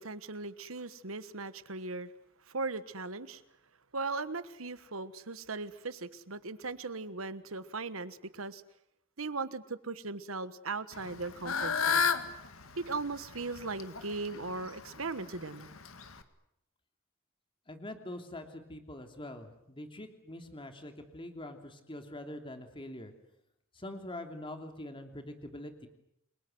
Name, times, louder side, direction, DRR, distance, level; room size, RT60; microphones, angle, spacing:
voice 1, 0.0-2.1 2.5-3.4 3.9-8.6 9.2-12.1 12.8-15.8, right 3 dB, 85° right, 14 dB, 1.4 m, -38 dB
Fowl / Bird, 10.9-16.2, left 6 dB, 85° left, 2.0 m, -34 dB
voice 2, 17.7-23.1 23.7-25.9, left 1 dB, 25° left, 6 dB, 3.0 m, -44 dB
29.5 x 23.0 x 7.9 m, 0.78 s
head